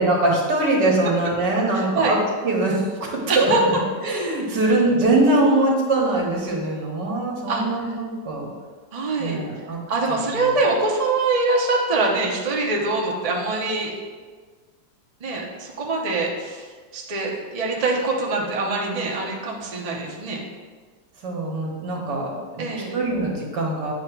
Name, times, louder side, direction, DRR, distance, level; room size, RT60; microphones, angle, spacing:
voice 1, 0.0-2.2 2.4-3.8 4.0-8.5 9.2-9.8 10.1-10.5 21.2-23.9, right 2 dB, 70° right, -2 dB, 1.9 m, -22 dB
voice 2, 1.6-2.2 3.3-3.6 7.5-8.0 8.9-9.4 9.9-13.9 15.2-16.7 16.9-20.4 22.6-22.9, right 3 dB, 35° right, -1 dB, 0.6 m, -24 dB
8.4 x 2.9 x 5.9 m, 1.5 s
omnidirectional pair, 1.9 m